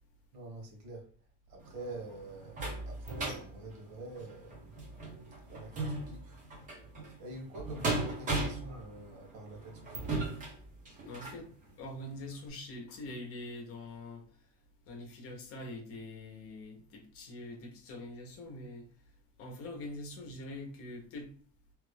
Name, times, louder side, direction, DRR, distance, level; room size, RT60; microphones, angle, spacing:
voice 1, 0.3-1.1 1.5-6.4 7.2-10.1, right 2 dB, 80° right, 1.4 m, -46 dB
sound 1, 1.6-11.4 12.0-12.1 12.5-12.6, right 2 dB, 25° right, 0.9 m, -38 dB
voice 2, 11.1-11.5 11.8-14.2 14.9-18.9 19.4-21.3, left 2 dB, 45° left, 0.9 m, -44 dB
3.1 x 2.5 x 3.3 m
cardioid pair, 180°, 30 cm